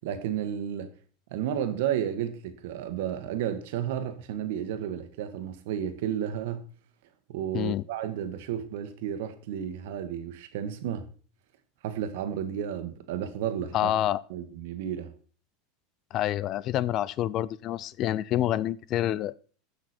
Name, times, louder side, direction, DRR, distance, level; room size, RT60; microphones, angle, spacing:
voice 1, 0.0-0.9 1.3-6.6 7.3-11.1 11.8-13.9 14.3-15.1, right 9 dB, 70° right, 1.4 m, -32 dB
voice 2, 13.7-14.2 16.1-19.3, left 12 dB, 40° left, 0.4 m, -27 dB
15.0 x 6.1 x 4.3 m
supercardioid pair, 135°, 0 cm